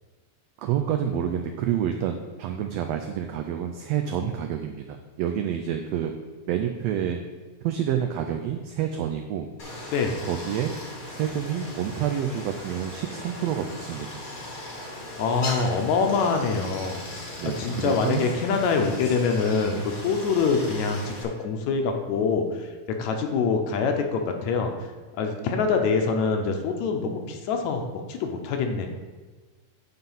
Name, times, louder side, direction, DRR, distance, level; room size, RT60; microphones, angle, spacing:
voice 1, 0.6-6.1 6.5-7.2 7.6-9.5 10.2-10.7 11.1-14.2 17.4-18.3, right 9 dB, 90° right, 5 dB, 1.4 m, -28 dB
Stream, 9.6-21.2, left 1 dB, 45° left, 1.1 m, -38 dB
voice 2, 9.9-10.2 15.2-17.0 17.4-22.7 23.0-24.7 25.2-28.9, left 5 dB, 75° left, 4 dB, 2.0 m, -25 dB
8.9 x 3.9 x 5.5 m, 1.3 s
omnidirectional pair, 3.5 m